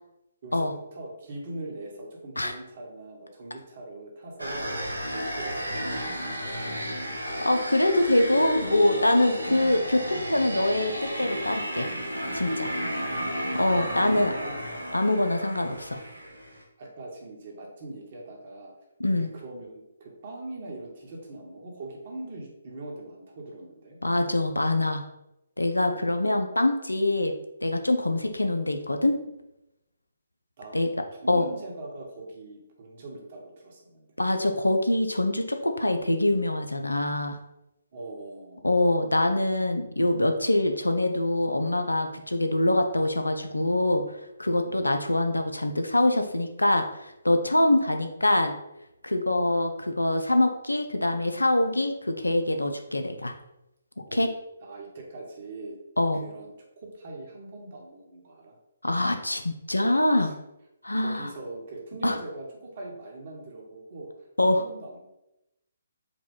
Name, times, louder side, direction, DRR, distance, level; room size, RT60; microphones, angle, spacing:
voice 1, 0.4-4.8 5.1-6.7 12.8-13.4 13.8-14.7 16.8-18.7 19.1-24.0 28.1-28.4 30.6-30.8 31.1-34.1 37.9-38.9 44.6-45.1 54.1-54.4 54.6-55.8 56.1-58.6 60.2-60.3 60.9-65.1, right 2 dB, 45° right, -1 dB, 1.2 m, -42 dB
sound 1, 4.4-16.6, equal, 85° right, 0.8 m, -33 dB
voice 2, 7.4-11.9 12.3-12.7 13.5-14.3 14.9-16.0 19.0-19.3 24.0-25.0 25.6-27.3 27.6-29.2 30.7-30.9 31.3-31.5 34.2-37.4 38.6-44.0 44.4-48.5 49.0-53.3 54.1-54.3 56.0-56.2 58.8-60.3 60.8-61.3 62.0-62.2 64.4-64.6, left 1 dB, 85° left, 6 dB, 0.5 m, -24 dB
4.8 x 2.2 x 3.8 m, 0.89 s
figure-of-eight pair, 135°, 0 cm